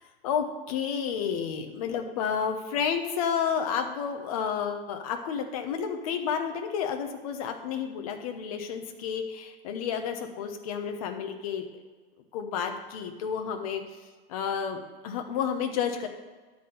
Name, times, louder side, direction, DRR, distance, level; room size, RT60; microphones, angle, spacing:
voice 1, 0.0-11.7 12.3-13.8 14.3-16.1, left 7 dB, 35° left, 5 dB, 0.9 m, -31 dB
10.5 x 4.4 x 7.7 m, 1.4 s
hypercardioid pair, 165°, 30 cm